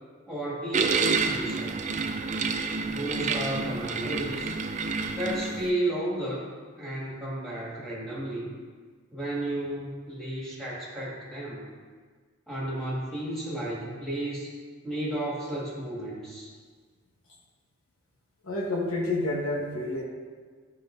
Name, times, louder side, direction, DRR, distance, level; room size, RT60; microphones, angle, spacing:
voice 1, 0.3-1.7 2.9-4.5 5.1-6.5 6.7-8.5 9.1-11.6 12.5-14.5 14.8-16.5, right 1 dB, ahead, -8 dB, 2.0 m, -33 dB
sound 1, 0.7-5.7, right 4 dB, 35° right, 0.3 m, -29 dB
voice 2, 18.4-20.0, left 2 dB, 80° left, -2 dB, 1.2 m, -29 dB
11.0 x 5.5 x 2.6 m, 1.5 s
head